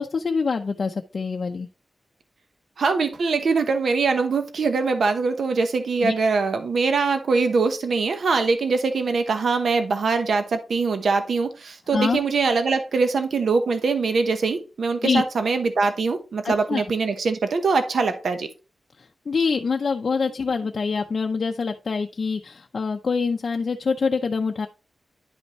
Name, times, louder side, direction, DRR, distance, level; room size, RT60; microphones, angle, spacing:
voice 1, 0.0-1.7 6.0-6.1 11.9-12.2 15.0-15.2 16.4-16.8 19.0-24.7, left 5 dB, 50° left, 3 dB, 0.5 m, -25 dB
voice 2, 2.8-18.5, right 4 dB, 75° right, 8 dB, 1.0 m, -23 dB
10.5 x 5.3 x 3.1 m, 0.30 s
wide cardioid pair, 160°, 0 cm